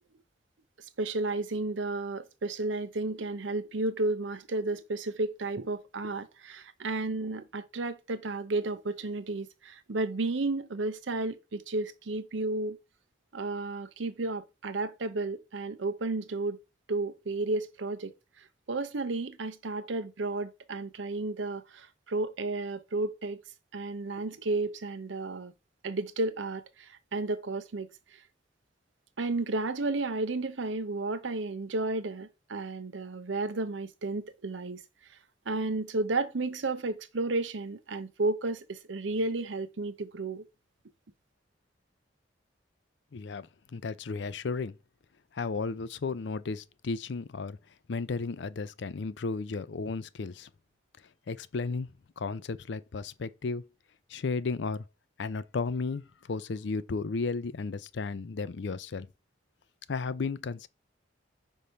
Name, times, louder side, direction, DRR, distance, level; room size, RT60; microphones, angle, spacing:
voice 1, 1.0-12.8 13.3-16.6 16.9-23.4 23.7-25.5 25.8-28.2 29.2-34.8 35.5-40.4, right 2 dB, 85° right, 0.7 m, -32 dB
voice 2, 43.1-43.5 43.7-44.7 45.3-47.6 47.9-50.5 51.3-51.9 52.2-53.7 54.1-54.8 55.2-59.1 59.9-60.7, left 4 dB, 70° left, 0.5 m, -34 dB
5.3 x 3.2 x 5.5 m
head